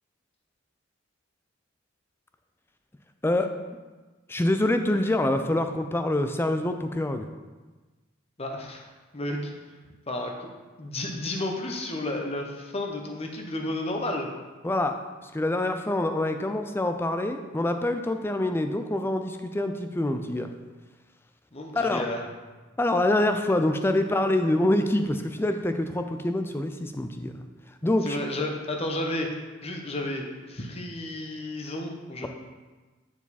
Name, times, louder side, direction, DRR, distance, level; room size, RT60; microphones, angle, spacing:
voice 1, 3.2-3.6 4.3-7.3 14.6-20.5 21.7-22.1 22.8-27.5 27.8-28.2 32.2-32.3, left 1 dB, 10° left, 7 dB, 0.4 m, -26 dB
voice 2, 8.4-8.9 9.1-9.5 10.1-10.5 10.8-14.3 21.5-22.2 28.0-29.3 29.6-32.3, left 1 dB, 30° left, 1 dB, 0.9 m, -32 dB
9.2 x 4.8 x 4.1 m, 1.3 s
head